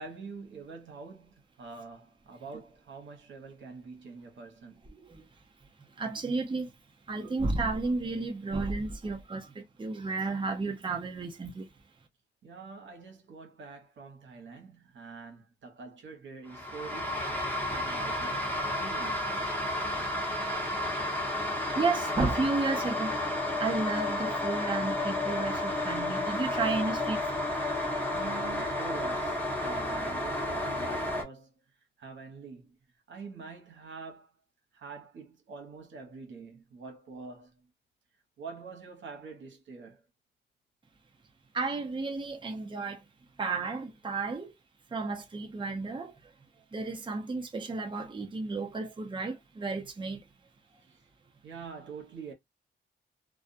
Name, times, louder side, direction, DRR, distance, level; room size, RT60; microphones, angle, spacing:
voice 1, 0.0-4.8 12.4-19.3 28.1-31.5 32.0-32.8 33.1-34.3 34.7-37.7 38.4-40.0 50.9-51.0 51.4-52.3, right 4 dB, 75° right, 1.0 m, -45 dB
voice 2, 6.0-6.7 7.1-11.7 21.8-23.1 23.6-27.2 27.5-27.6 41.5-43.0 43.4-44.5 44.9-46.1 46.7-50.2, right 3 dB, 25° right, 0.7 m, -32 dB
sound 1, 16.5-31.2, left 1 dB, 10° left, 1.0 m, -31 dB
2.4 x 2.2 x 2.5 m
cardioid pair, 80°, 19 cm